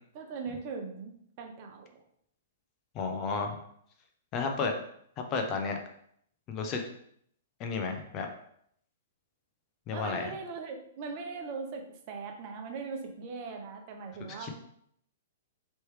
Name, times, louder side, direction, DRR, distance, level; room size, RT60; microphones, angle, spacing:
voice 1, 0.1-2.0 9.9-14.5, right 4 dB, 45° right, 3 dB, 0.8 m, -40 dB
voice 2, 2.9-3.6 4.3-4.7 5.2-5.8 6.5-6.9 7.6-8.3 9.9-10.3 14.4-14.5, left 4 dB, 35° left, 4 dB, 0.7 m, -32 dB
4.5 x 3.2 x 3.2 m, 0.68 s
hypercardioid pair, 125°, 0 cm